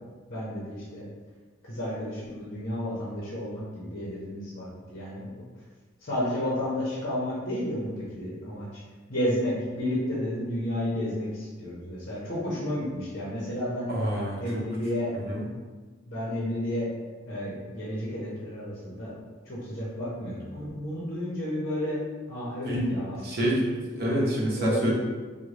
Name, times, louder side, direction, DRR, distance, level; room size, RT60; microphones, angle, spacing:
voice 1, 0.3-1.1 1.6-5.4 6.0-8.8 9.1-13.9 14.4-15.1 16.1-16.9 17.3-19.2 19.5-22.0 22.3-23.2 24.6-24.9, left 1 dB, 50° left, -7 dB, 0.7 m, -32 dB
voice 2, 13.9-14.4 15.3-15.4 22.7-22.9 23.2-23.6 23.9-24.9, equal, 50° right, -4 dB, 0.8 m, -26 dB
3.6 x 2.1 x 3.2 m, 1.4 s
head